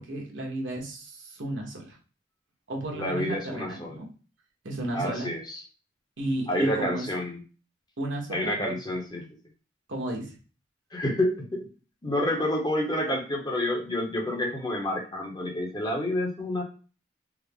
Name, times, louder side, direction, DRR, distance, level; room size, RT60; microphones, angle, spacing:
voice 1, 0.0-2.0 2.7-4.1 4.6-5.3 6.2-7.1 8.0-8.8 9.1-9.2 9.9-10.3, right 1 dB, 85° right, 0 dB, 1.1 m, -33 dB
voice 2, 2.9-4.0 4.9-5.6 6.5-7.4 8.3-9.2 10.9-11.7 12.0-16.6, left 1 dB, 20° left, 0 dB, 0.7 m, -29 dB
3.5 x 2.0 x 3.5 m, 0.36 s
head